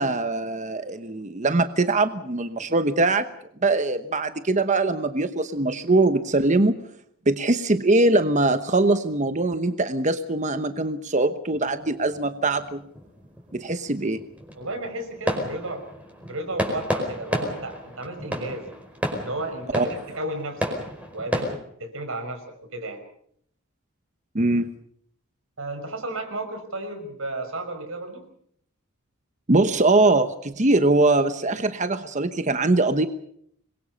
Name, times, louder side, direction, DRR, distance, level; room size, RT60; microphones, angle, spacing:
voice 1, 0.0-3.3 3.6-6.7 7.3-12.8 13.5-14.2 19.7-19.9 24.3-24.7 29.5-33.1, right 2 dB, 35° right, 10 dB, 1.1 m, -22 dB
sound 1, 11.6-21.6, equal, 5° right, 4.9 m, -32 dB
voice 2, 14.6-15.8 16.3-18.7 19.2-20.8 21.1-23.0 25.6-28.2, right 2 dB, 65° right, 7 dB, 5.6 m, -33 dB
26.5 x 22.5 x 5.5 m, 0.66 s
head